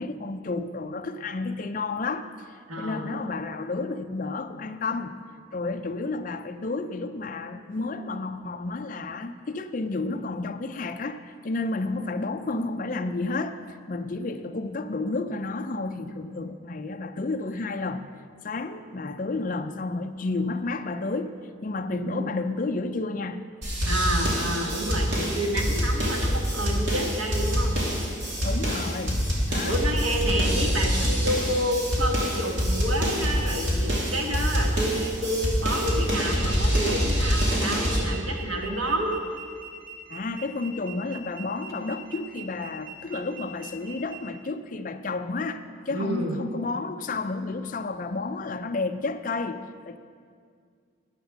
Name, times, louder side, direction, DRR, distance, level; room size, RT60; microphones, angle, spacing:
voice 1, 0.0-2.3 2.8-5.2 5.5-13.6 13.9-18.1 18.4-21.3 21.6-23.5 28.4-29.8 30.2-30.6 30.9-31.2 40.1-50.0, left 3 dB, 40° left, 8 dB, 0.4 m, -31 dB
voice 2, 2.7-3.1 22.0-22.3 23.9-27.7 29.6-39.1 45.9-46.4, right 1 dB, 90° right, 1 dB, 1.6 m, -29 dB
sound 1, 23.6-38.0, equal, 65° right, 2.7 m, -25 dB
sound 2, 35.7-44.2, right 7 dB, 40° right, 1.7 m, -43 dB
11.0 x 8.1 x 6.2 m, 2.1 s
head